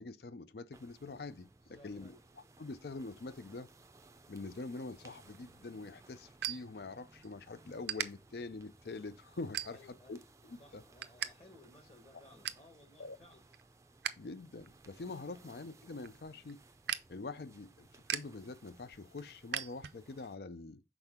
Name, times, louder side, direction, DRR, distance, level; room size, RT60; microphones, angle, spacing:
voice 1, 0.0-2.1 2.6-3.7 4.3-10.8 13.0-13.2 14.2-16.6 17.1-20.8, left 3 dB, 65° left, 0.5 m, -45 dB
sound 1, 0.7-20.4, right 2 dB, 15° right, 0.4 m, -61 dB
voice 2, 1.6-2.2 9.6-10.2 10.6-13.4 15.3-15.4, left 1 dB, 35° left, 1.3 m, -60 dB
sound 2, 5.3-7.3 7.8-8.1 8.6-8.9 9.5-10.1 10.5-11.3 11.6-11.7 12.1-12.7 13.2-14.2 14.5-20.3, right 10 dB, 70° right, 0.5 m, -41 dB
6.1 x 4.4 x 3.6 m
head